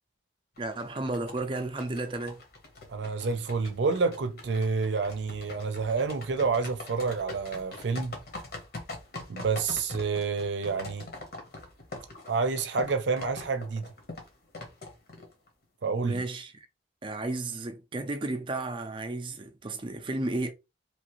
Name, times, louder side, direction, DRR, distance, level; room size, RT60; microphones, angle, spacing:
sound 1, 0.6-15.5, left 2 dB, 55° left, 1.0 m, -43 dB
voice 1, 0.6-2.4 16.0-16.7 17.0-20.5, right 2 dB, 30° right, 0.5 m, -33 dB
voice 2, 2.9-8.2 9.3-11.1 12.3-13.9 15.8-16.2, right 4 dB, 85° right, 0.5 m, -29 dB
3.1 x 2.5 x 3.0 m
head